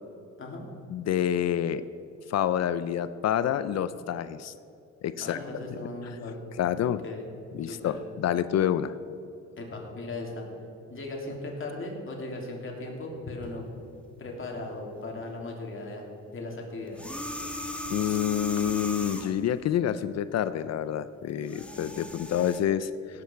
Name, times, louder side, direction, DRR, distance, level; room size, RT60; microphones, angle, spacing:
voice 1, 0.9-1.8 2.3-4.5 5.0-5.4 6.6-7.0 7.5-8.9 17.9-23.2, left 10 dB, 60° left, 14 dB, 0.5 m, -28 dB
voice 2, 5.2-6.4 6.8-7.2 7.6-8.0 9.6-10.4 10.9-13.7 14.2-16.0 16.3-17.0, left 2 dB, 45° left, -1 dB, 3.1 m, -37 dB
sound 1, 16.9-19.5 21.3-22.6, equal, 5° left, 1.4 m, -37 dB
17.5 x 8.5 x 4.6 m, 2.8 s
cardioid pair, 90°, 30 cm